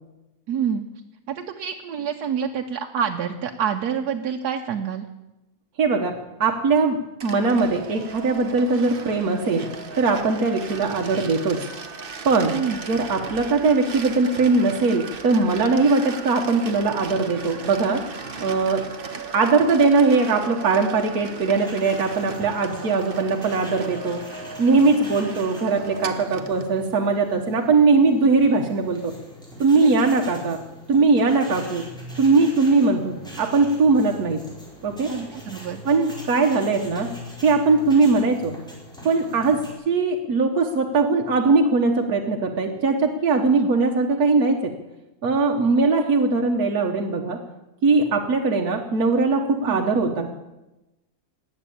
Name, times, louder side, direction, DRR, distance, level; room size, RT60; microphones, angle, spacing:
voice 1, 0.5-0.9 1.3-5.1 12.5-12.8 29.8-29.9 35.1-35.8 43.6-43.7 49.6-49.8, right 7 dB, 85° right, 3 dB, 1.4 m, -27 dB
voice 2, 5.8-6.1 6.4-9.7 10.0-11.6 12.2-12.6 12.8-18.0 18.4-18.8 19.3-24.2 24.6-29.1 29.6-30.6 30.9-31.9 32.2-34.4 34.8-35.1 35.8-37.1 37.4-38.5 39.0-39.6 39.9-44.7 45.2-47.4 47.8-50.4, right 3 dB, 70° right, 1 dB, 1.7 m, -20 dB
sound 1, 7.2-26.7, right 4 dB, 40° right, 1.2 m, -37 dB
sound 2, 21.5-39.7, left 1 dB, 5° left, 4.6 m, -42 dB
19.5 x 8.2 x 8.6 m, 1.0 s
omnidirectional pair, 1.6 m